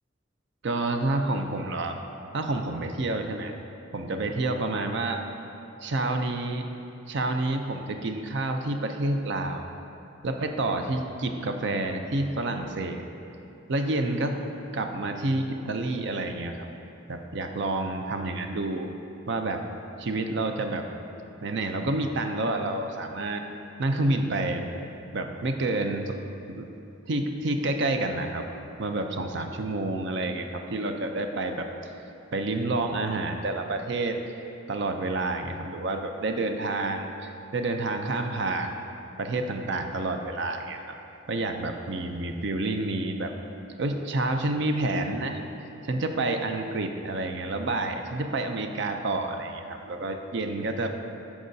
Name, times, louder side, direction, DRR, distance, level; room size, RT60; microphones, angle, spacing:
voice 1, 0.6-2.0 2.3-3.5 3.9-5.2 5.8-6.7 7.1-9.7 10.2-13.0 13.7-14.4 14.7-16.7 17.1-18.9 19.3-19.6 20.0-20.9 21.4-23.4 23.8-24.7 25.1-26.2 26.5-26.7 27.1-28.4 28.8-31.9 32.3-34.2 34.7-38.9 39.2-40.9 41.3-43.3 43.8-45.4 45.8-51.0, right 2 dB, 60° right, 5 dB, 0.5 m, -29 dB
12.5 x 4.8 x 2.7 m, 2.8 s
head